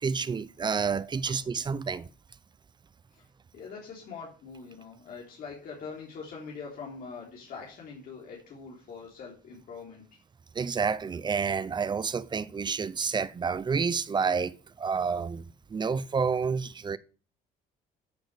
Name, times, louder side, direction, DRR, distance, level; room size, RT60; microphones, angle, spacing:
voice 1, 0.0-2.1 10.5-15.4 15.7-17.0, right 5 dB, 25° right, 0.6 m, -29 dB
voice 2, 3.5-10.0, left 5 dB, 60° left, 3.3 m, -43 dB
13.0 x 6.5 x 4.9 m
cardioid pair, 110°, 17 cm